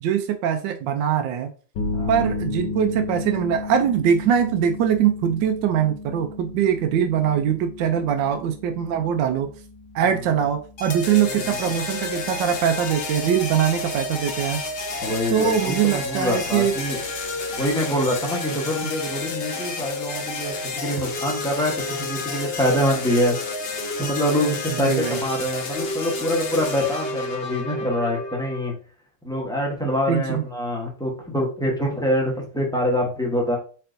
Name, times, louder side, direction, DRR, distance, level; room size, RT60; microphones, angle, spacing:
voice 1, 0.0-1.5 2.1-9.5 9.9-14.6 15.3-16.8 24.8-25.2 29.8-30.4, right 8 dB, 80° right, 6 dB, 1.2 m, -22 dB
sound 1, 1.8-17.7, left 3 dB, 80° left, 1.6 m, -35 dB
sound 2, 10.8-28.7, left 3 dB, 60° left, 0.6 m, -30 dB
voice 2, 15.0-17.0 17.6-23.4 24.0-28.7 29.2-33.6, equal, 5° left, -2 dB, 0.7 m, -25 dB
4.4 x 4.4 x 2.6 m, 0.39 s
omnidirectional pair, 2.0 m